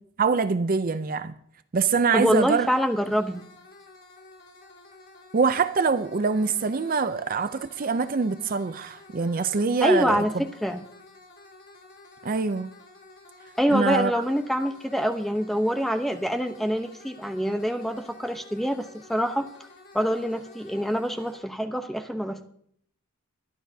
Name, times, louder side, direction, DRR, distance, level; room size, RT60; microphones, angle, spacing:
voice 1, 0.2-1.3 1.7-2.7 5.3-10.2 12.2-12.7 13.7-14.2, right 5 dB, 40° right, 0.5 m, -24 dB
voice 2, 2.1-3.4 9.8-10.8 13.6-19.5 19.9-22.5, equal, ahead, 0.7 m, -25 dB
sound 1, 2.2-21.4, left 2 dB, 50° left, 3.6 m, -51 dB
22.0 x 11.5 x 2.7 m
head